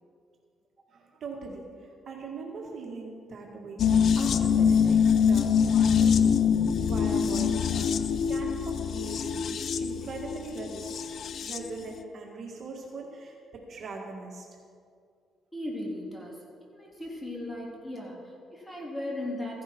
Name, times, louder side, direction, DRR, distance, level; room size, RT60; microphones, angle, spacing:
voice 1, 0.9-6.4 6.8-8.0 8.3-11.0 11.4-14.5, right 3 dB, 55° right, 0 dB, 1.9 m, -41 dB
sound 1, 3.8-11.7 12.0-12.1, left 7 dB, 60° left, 0.6 m, -24 dB
voice 2, 15.5-16.5 16.7-19.6, left 1 dB, 15° left, -2 dB, 3.1 m, -37 dB
15.0 x 11.0 x 4.5 m, 2.2 s
cardioid pair, 90°, 0 cm